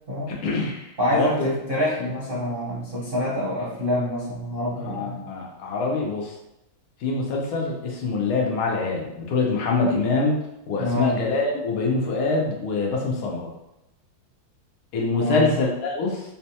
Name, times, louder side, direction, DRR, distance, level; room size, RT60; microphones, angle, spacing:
voice 1, 0.3-1.5 4.8-6.3 7.0-10.4 10.7-13.5 14.9-16.2, left 3 dB, 85° left, -1 dB, 1.6 m, -25 dB
voice 2, 1.0-5.2 10.8-11.2 15.2-15.5, left 1 dB, 50° right, -9 dB, 0.6 m, -26 dB
4.8 x 2.2 x 2.8 m, 0.87 s
omnidirectional pair, 2.3 m